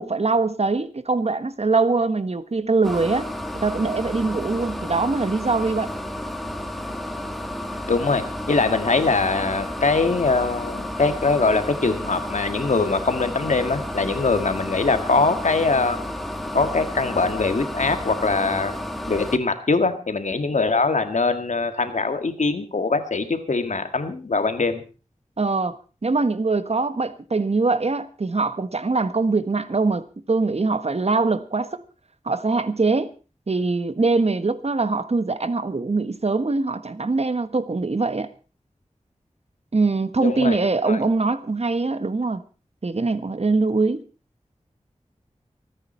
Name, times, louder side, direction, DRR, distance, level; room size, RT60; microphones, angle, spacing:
voice 1, 0.0-3.3 3.6-5.9 25.4-31.8 32.2-33.1 33.5-38.3 39.7-42.4 42.8-44.0, right 3 dB, 60° right, 1.3 m, -23 dB
sound 1, 2.8-19.4, left 1 dB, ahead, 2.0 m, -31 dB
voice 2, 7.9-16.0 16.5-18.7 19.1-24.8 40.2-40.6 40.8-41.0, left 3 dB, 80° left, 1.8 m, -22 dB
25.5 x 9.9 x 4.4 m
wide cardioid pair, 55°, 12 cm